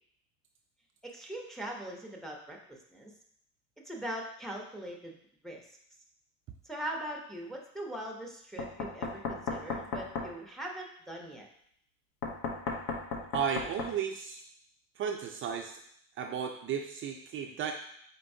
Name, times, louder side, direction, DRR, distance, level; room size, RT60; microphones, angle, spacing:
voice 1, 1.0-3.1 3.8-5.1 5.4-5.6 6.6-11.5, right 1 dB, ahead, 0 dB, 0.6 m, -41 dB
Knock, 8.6-10.3 12.2-13.9, left 4 dB, 80° left, 0.8 m, -35 dB
voice 2, 13.3-14.4 15.0-15.8 16.2-17.7, right 7 dB, 45° right, 3 dB, 0.4 m, -34 dB
4.4 x 4.0 x 2.6 m, 0.68 s
cardioid pair, 125°, 29 cm